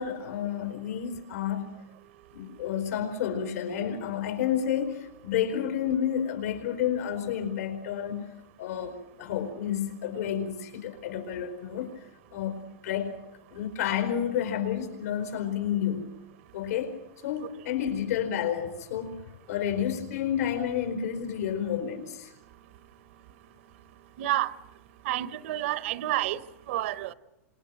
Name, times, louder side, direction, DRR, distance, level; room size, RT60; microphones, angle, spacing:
voice 1, 0.0-1.8 2.3-12.0 12.3-13.2 13.5-16.1 16.5-17.0 17.2-22.3, left 9 dB, 75° left, 4.7 m, -30 dB
voice 2, 24.2-24.5 25.0-26.4 26.7-27.1, right 14 dB, 55° right, 1.0 m, -29 dB
29.0 x 27.0 x 6.4 m
supercardioid pair, 170°, 8 cm